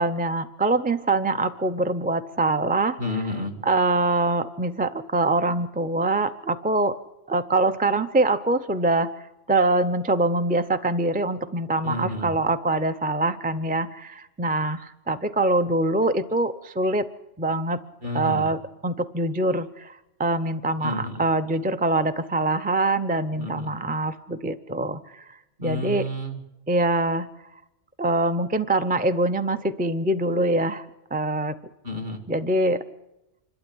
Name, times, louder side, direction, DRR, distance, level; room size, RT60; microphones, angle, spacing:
voice 1, 0.0-3.0 3.6-7.0 7.3-17.1 17.4-17.8 18.1-26.1 26.7-27.3 28.0-30.9 31.1-31.6 32.3-32.8, right 2 dB, 10° right, 9 dB, 0.4 m, -24 dB
voice 2, 3.0-3.6 11.8-12.3 18.0-18.5 20.8-21.3 23.3-23.7 25.6-26.4 31.8-32.3, left 1 dB, 45° right, 5 dB, 2.5 m, -31 dB
26.5 x 12.5 x 9.9 m, 0.94 s
omnidirectional pair, 1.3 m